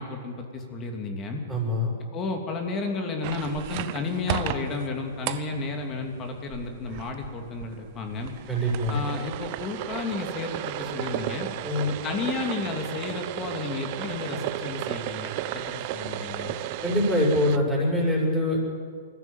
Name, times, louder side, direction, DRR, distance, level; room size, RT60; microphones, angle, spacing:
voice 1, 0.0-1.4 2.1-8.3 8.9-11.5 11.9-16.5, left 3 dB, 30° left, 3 dB, 2.9 m, -32 dB
voice 2, 1.5-1.9 8.5-8.9 11.6-12.0 16.8-18.6, left 1 dB, ahead, -3 dB, 6.6 m, -24 dB
sound 1, 3.2-17.6, right 13 dB, 45° right, 0.9 m, -34 dB
21.0 x 14.5 x 9.3 m, 2.1 s
hypercardioid pair, 120°, 0 cm